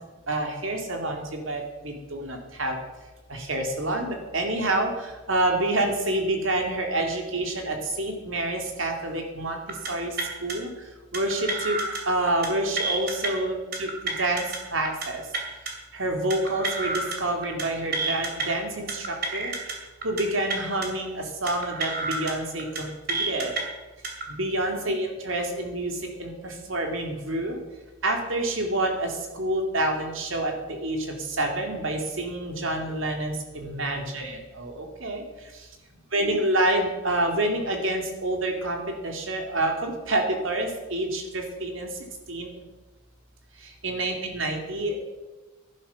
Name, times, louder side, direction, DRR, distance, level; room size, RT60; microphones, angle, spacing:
voice 1, 0.3-2.8 3.3-9.6 9.9-10.7 11.1-14.5 14.7-15.2 15.9-19.5 20.0-23.5 24.3-27.6 28.0-35.2 36.1-41.9 42.3-42.5 43.6-45.0, right 1 dB, 75° right, 2 dB, 2.4 m, -28 dB
sound 1, 9.7-9.9 10.2-10.5 11.1-12.0 12.3-12.5 12.8-13.3 13.7-14.6 14.9-15.1 15.3-15.7 16.3-17.2 17.4-17.6 17.9-18.5 18.9-19.7 20.0-20.2 20.5-20.9 21.5-22.3 22.6-22.8 23.1-23.6 24.0-24.2, right 3 dB, 50° right, 2.5 m, -29 dB
11.5 x 11.0 x 5.8 m, 1.1 s
head